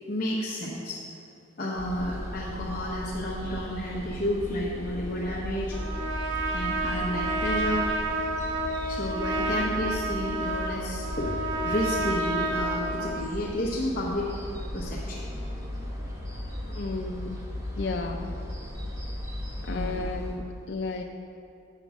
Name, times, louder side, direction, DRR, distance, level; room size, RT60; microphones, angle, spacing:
voice 1, 0.1-1.0 1.6-5.8 6.5-7.9 8.8-14.3 14.7-15.3 19.7-20.0, left 1 dB, 45° left, -6 dB, 0.9 m, -31 dB
sound 1, 1.8-20.3, left 1 dB, 15° right, 0.9 m, -36 dB
Trumpet, 5.7-13.4, right 2 dB, 70° right, 0.9 m, -30 dB
voice 2, 16.6-17.4 17.7-18.3 19.6-21.0, left 3 dB, 60° left, 1 dB, 0.5 m, -33 dB
6.8 x 5.9 x 7.3 m, 2.6 s
head